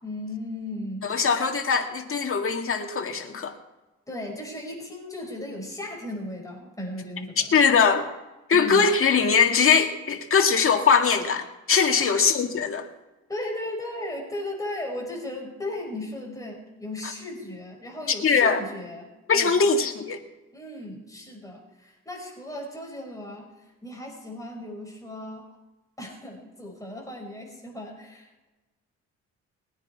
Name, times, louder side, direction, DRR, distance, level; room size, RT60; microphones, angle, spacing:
voice 1, 0.0-1.2 4.1-7.6 8.5-8.9 12.0-12.2 13.3-19.6 20.5-23.5 23.8-25.5 26.0-28.5, left 1 dB, 10° left, -1 dB, 5.7 m, -36 dB
voice 2, 1.0-3.6 7.5-8.1 8.5-12.9 18.2-18.6 19.3-20.2, left 5 dB, 45° left, 4 dB, 2.0 m, -21 dB
21.5 x 9.7 x 4.7 m, 1.1 s
cardioid pair, 90°, 30 cm